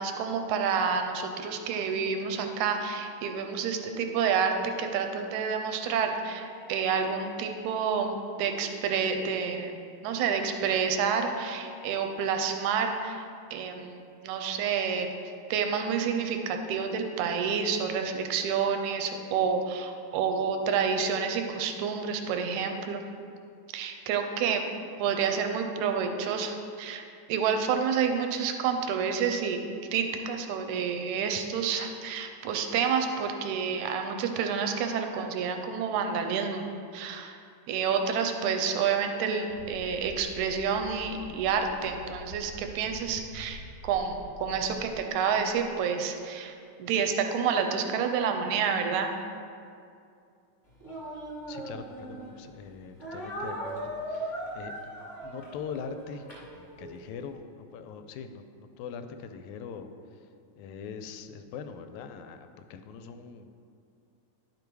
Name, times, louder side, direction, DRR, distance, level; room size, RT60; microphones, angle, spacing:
voice 1, 0.0-13.2 13.5-15.1 15.5-23.0 23.7-24.6 25.0-27.0 27.3-29.6 29.9-36.7 36.9-37.4 37.7-46.5 46.8-49.1, right 6 dB, 85° right, 5 dB, 2.0 m, -29 dB
sound 1, 6.1-8.0 11.3-13.1, left 1 dB, 40° left, 1.4 m, -52 dB
sound 2, 39.5-45.8, equal, 10° right, 1.0 m, -47 dB
Speech, 50.8-52.4 53.0-57.0, right 1 dB, 15° left, 1.5 m, -38 dB
voice 2, 51.5-54.9 55.2-56.3 56.5-60.3 60.6-63.6, left 6 dB, 80° left, 9 dB, 1.9 m, -42 dB
10.5 x 5.2 x 4.6 m, 2.5 s
omnidirectional pair, 3.5 m